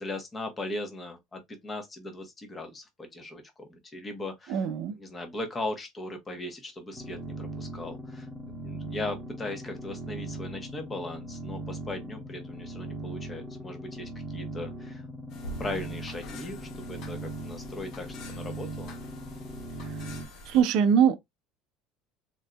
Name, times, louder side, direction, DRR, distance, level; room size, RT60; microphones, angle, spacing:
voice 1, 0.0-4.7 5.0-8.3 8.6-15.0 15.6-19.0, left 2 dB, 15° left, 0.9 m, -38 dB
voice 2, 4.5-5.0 20.5-21.2, right 8 dB, 60° right, 0.5 m, -22 dB
sound 1, 6.9-20.2, right 1 dB, 5° right, 1.1 m, -39 dB
sound 2, 15.3-20.6, left 2 dB, 50° left, 0.7 m, -45 dB
3.8 x 2.6 x 2.2 m
cardioid pair, 145°, 0 cm